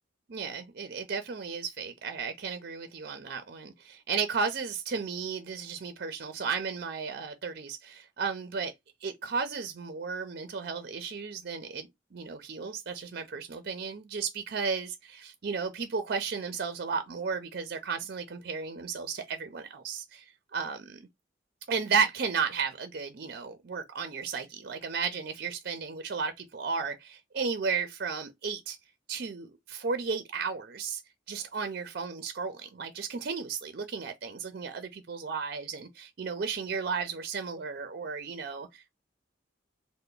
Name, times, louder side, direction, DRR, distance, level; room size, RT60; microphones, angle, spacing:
voice 1, 0.3-8.7 9.0-21.1 21.7-28.8 29.1-31.0 31.3-38.9, right 5 dB, 55° right, 0.5 m, -34 dB
3.3 x 2.1 x 3.8 m
head